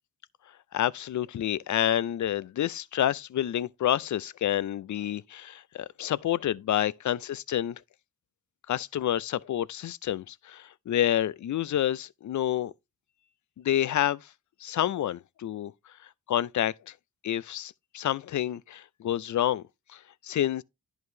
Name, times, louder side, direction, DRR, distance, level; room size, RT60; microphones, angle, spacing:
voice 1, 0.7-7.7 8.7-12.7 13.6-14.2 14.6-15.7 16.3-16.9 17.2-19.6 19.9-20.6, left 11 dB, 55° left, 0.4 m, -28 dB
10.5 x 4.7 x 2.7 m
cardioid pair, 75°, 35 cm